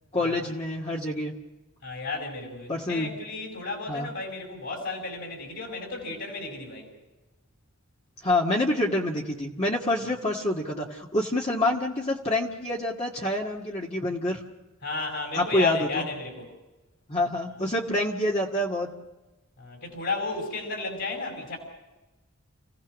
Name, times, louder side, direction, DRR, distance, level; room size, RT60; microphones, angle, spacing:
voice 1, 0.1-1.3 2.7-3.1 3.9-4.1 8.2-14.4 15.3-16.0 17.1-18.9, left 1 dB, 30° left, -2 dB, 1.8 m, -27 dB
voice 2, 1.8-6.9 14.8-16.6 19.6-21.6, left 3 dB, 60° left, 0 dB, 5.4 m, -33 dB
30.0 x 17.0 x 6.3 m, 1.1 s
head